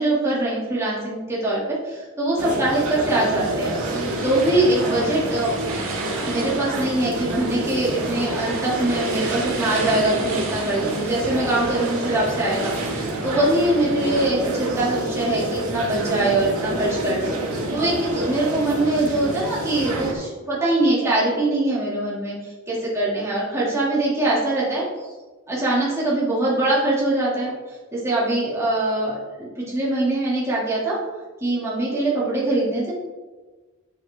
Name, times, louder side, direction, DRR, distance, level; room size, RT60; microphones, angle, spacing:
voice 1, 0.0-3.7 4.2-5.5 6.3-25.1 25.5-31.0 31.4-32.9, right 1 dB, 10° right, -8 dB, 2.7 m, -23 dB
sound 1, 2.4-20.1, right 1 dB, 90° right, 2.2 m, -28 dB
sound 2, 3.8-14.3, right 3 dB, 65° right, 3.1 m, -34 dB
10.0 x 8.3 x 3.7 m, 1.3 s
head